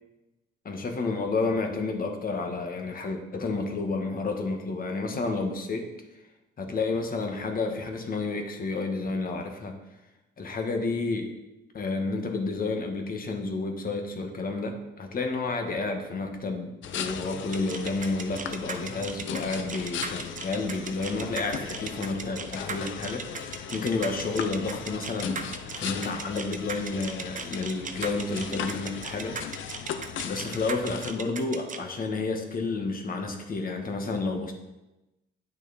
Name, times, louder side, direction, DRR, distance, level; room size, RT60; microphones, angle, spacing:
voice 1, 0.6-5.9 6.6-9.8 10.4-11.3 11.7-25.4 25.7-29.4 30.2-34.5, left 3 dB, 45° left, 4 dB, 1.4 m, -30 dB
sound 1, 16.8-31.1, left 8 dB, 75° left, 0.7 m, -38 dB
sound 2, 17.5-31.8, right 5 dB, 40° right, 0.8 m, -37 dB
9.2 x 6.1 x 4.2 m, 0.99 s
cardioid pair, 90°, 20 cm